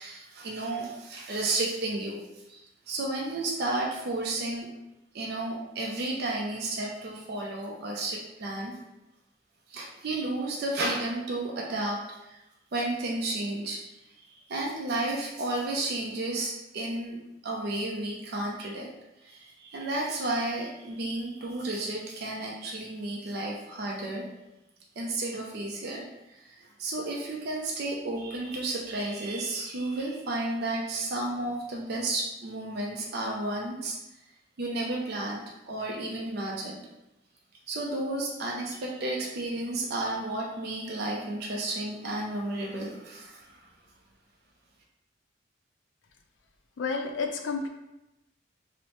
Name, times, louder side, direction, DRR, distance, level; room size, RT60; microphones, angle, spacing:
voice 1, 0.0-2.2 2.5-2.6 2.9-4.7 5.1-8.8 9.7-12.3 12.7-13.8 14.5-18.9 19.2-24.2 25.0-26.1 26.4-34.0 34.6-36.8 37.7-43.6, right 2 dB, 55° right, -2 dB, 0.4 m, -32 dB
voice 2, 46.8-47.7, left 4 dB, 75° left, 3 dB, 0.4 m, -30 dB
2.9 x 2.0 x 3.0 m, 0.92 s
head